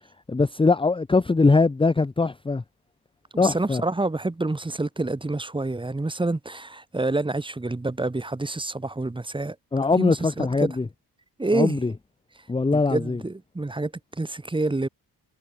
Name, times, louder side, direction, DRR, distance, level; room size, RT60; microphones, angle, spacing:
voice 1, 0.3-2.6 3.4-3.8 9.7-10.9 11.5-11.9 12.5-13.2, left 3 dB, 15° left, 0.8 m, -21 dB
voice 2, 3.3-9.6 10.0-10.7 11.4-11.8 12.7-14.9, right 2 dB, 10° right, 1.9 m, -27 dB
cardioid pair, 130°, 39 cm